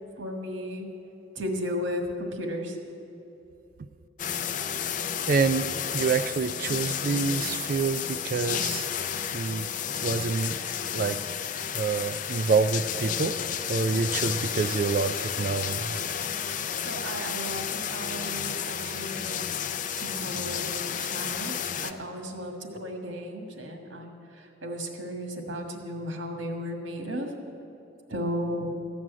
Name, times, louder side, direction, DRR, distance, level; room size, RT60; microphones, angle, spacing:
voice 1, 0.2-0.9 1.3-2.8 16.8-19.4 19.9-21.6 21.8-27.3 28.1-28.7, equal, 90° right, 4 dB, 1.7 m, -34 dB
sound 1, 4.2-21.9, left 8 dB, 40° left, 0.4 m, -32 dB
voice 2, 5.3-8.9 9.3-9.7 10.0-10.6 10.9-11.2 11.7-13.4 13.7-16.0, right 5 dB, 45° right, 9 dB, 0.3 m, -27 dB
14.0 x 6.2 x 9.5 m, 2.9 s
head